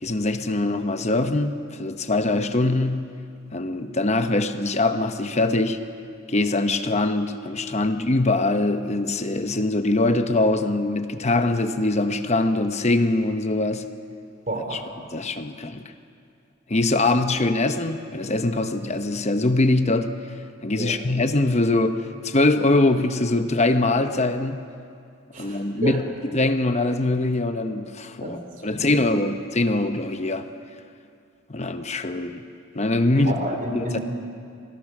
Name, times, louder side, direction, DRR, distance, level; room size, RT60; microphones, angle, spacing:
voice 1, 0.0-3.1 3.5-5.8 6.3-13.8 14.7-14.8 15.1-15.8 16.7-20.1 20.6-24.6 25.4-30.5 31.5-32.4 32.7-33.4 33.7-34.0, left 2 dB, 35° left, 8 dB, 0.9 m, -23 dB
voice 2, 14.5-14.8 20.8-21.0 25.3-26.0 28.2-28.4 28.7-29.0 33.1-34.0, right 1 dB, 40° right, 3 dB, 3.2 m, -30 dB
27.0 x 20.0 x 6.1 m, 2.3 s
head